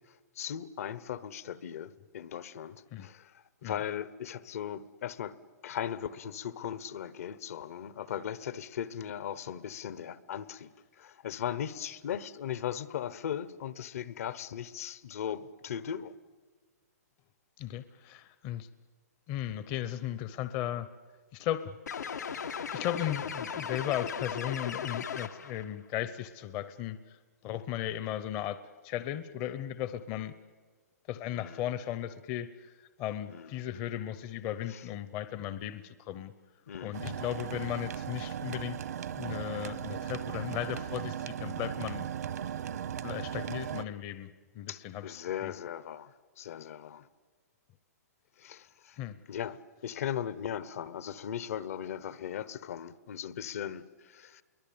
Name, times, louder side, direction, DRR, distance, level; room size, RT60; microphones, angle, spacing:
voice 1, 0.4-3.3 3.6-5.3 5.6-10.7 11.0-16.1 31.3-31.6 33.3-33.5 34.7-34.8 36.7-37.0 44.7-47.1 48.4-49.0 49.3-54.4, left 9 dB, 60° left, 17 dB, 1.1 m, -38 dB
voice 2, 17.6-18.7 19.3-20.9 21.3-21.7 22.7-27.2 27.4-30.3 31.1-36.3 36.8-38.8 39.1-42.1 43.0-45.2 45.4-45.5 49.0-49.2, left 12 dB, 30° left, 13 dB, 0.8 m, -36 dB
sound 1, 21.9-25.6, left 7 dB, 90° left, 1.6 m, -37 dB
sound 2, 36.9-43.8, right 9 dB, 75° right, 1.1 m, -37 dB
27.0 x 23.0 x 8.7 m, 1.4 s
hypercardioid pair, 150°, 9 cm